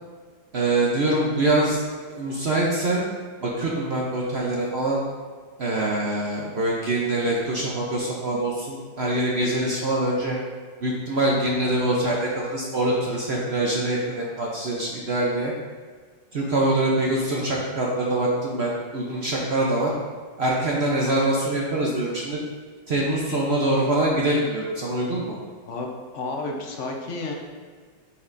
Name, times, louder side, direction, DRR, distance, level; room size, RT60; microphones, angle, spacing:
voice 1, 0.5-3.1 3.4-5.0 5.6-10.4 10.8-15.5 16.3-19.9 20.4-22.4 22.9-25.4, right 1 dB, 60° right, -3 dB, 0.7 m, -24 dB
voice 2, 26.1-27.3, left 3 dB, 55° left, 0 dB, 0.9 m, -31 dB
7.5 x 6.0 x 2.6 m, 1.6 s
omnidirectional pair, 2.0 m